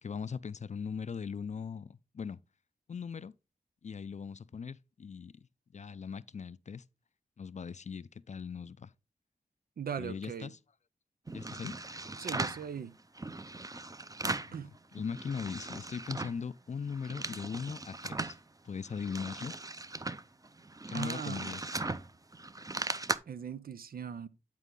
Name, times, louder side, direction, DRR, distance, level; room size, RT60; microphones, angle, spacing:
voice 1, 0.0-2.4 2.9-3.3 3.8-5.3 5.7-6.8 7.4-8.9 10.0-10.6 11.3-11.7 14.5-18.4 18.6-19.6 20.9-21.8, left 6 dB, 50° left, 0.4 m, -39 dB
voice 2, 9.8-10.5 12.2-12.9 14.2-14.7 20.9-21.5 23.3-24.3, right 7 dB, 85° right, 0.5 m, -40 dB
sound 1, 11.3-12.7 13.2-14.6 14.9-16.4 16.8-18.4 18.9-23.2, right 2 dB, 25° right, 0.6 m, -38 dB
9.7 x 4.5 x 3.7 m
cardioid pair, 40°, 15 cm